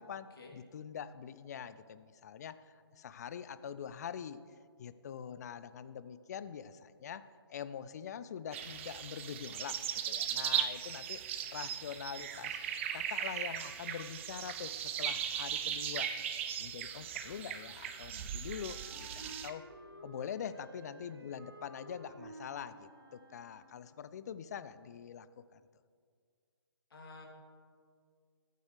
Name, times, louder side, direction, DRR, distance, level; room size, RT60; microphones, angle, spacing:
voice 1, 0.0-4.4 4.8-11.2 11.5-12.6 12.9-16.1 16.6-19.6 20.0-25.3 25.5-25.6, left 8 dB, 40° left, 14 dB, 0.5 m, -44 dB
sound 1, 8.5-19.5, right 9 dB, 30° right, 0.6 m, -38 dB
Wind instrument woodwind instrument, 18.3-24.1, right 1 dB, 65° right, 1.5 m, -54 dB
voice 2, 26.9-27.3, left 3 dB, 60° left, -1 dB, 2.7 m, -51 dB
21.0 x 9.2 x 3.2 m, 2.1 s
figure-of-eight pair, 135°, 14 cm